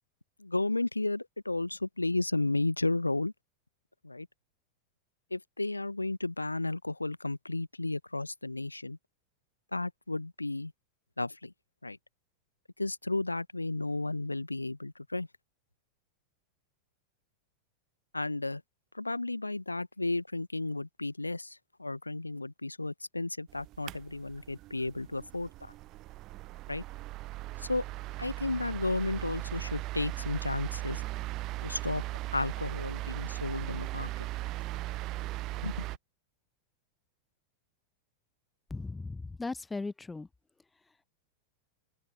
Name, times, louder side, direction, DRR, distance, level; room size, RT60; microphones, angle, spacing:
voice 1, 0.4-3.3 4.0-4.3 5.3-9.0 9.7-10.7 11.2-11.5 11.8-12.0 12.8-15.3 18.1-18.6 18.9-25.7 26.7-26.8 27.6-27.8 28.2-31.0 31.6-32.0 32.3-34.1 35.6-35.7, left 2 dB, 85° left, 1.0 m, -33 dB
sound 1, 23.5-36.0, right 18 dB, 40° right, 0.3 m, -38 dB
voice 2, 38.7-40.3, left 3 dB, 10° left, 0.7 m, -37 dB
open air
figure-of-eight pair, 90°, 0 cm